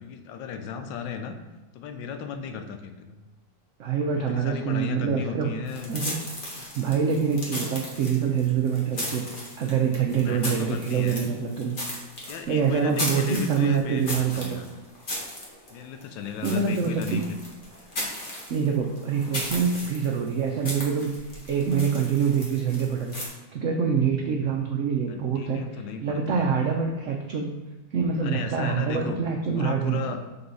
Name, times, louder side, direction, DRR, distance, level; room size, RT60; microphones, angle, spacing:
voice 1, 0.0-1.3 1.7-3.2 4.2-6.0 6.6-6.7 10.0-11.3 12.3-14.7 15.7-17.4 25.1-26.5 28.2-29.2 29.5-30.2, left 6 dB, 85° left, 7 dB, 1.3 m, -35 dB
voice 2, 3.8-5.5 5.9-6.2 6.7-11.8 12.5-14.6 16.4-17.3 18.0-18.1 18.5-21.1 21.5-23.2 23.5-25.6 26.0-27.5 27.9-30.0, right 6 dB, 80° right, 2 dB, 0.6 m, -25 dB
sound 1, 5.7-23.3, left 1 dB, 30° left, 1.2 m, -36 dB
6.8 x 3.8 x 4.0 m, 1.1 s
omnidirectional pair, 2.0 m